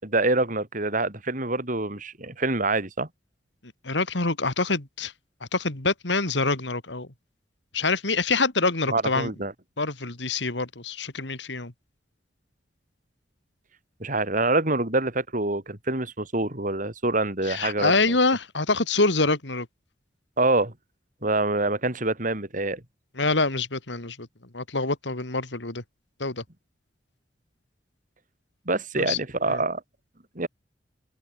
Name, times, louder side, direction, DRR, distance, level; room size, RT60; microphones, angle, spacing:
voice 1, 0.0-3.1 8.9-9.5 14.0-18.2 20.4-20.7 21.2-22.8 28.7-29.8 30.4-30.5, right 2 dB, 45° right, 4.0 m, -26 dB
voice 2, 3.8-5.1 5.5-7.1 7.7-9.3 9.8-11.7 17.5-19.7 23.2-24.3 24.5-25.8 26.2-26.4 29.0-29.2 29.5-29.6, left 3 dB, 90° left, 3.0 m, -25 dB
head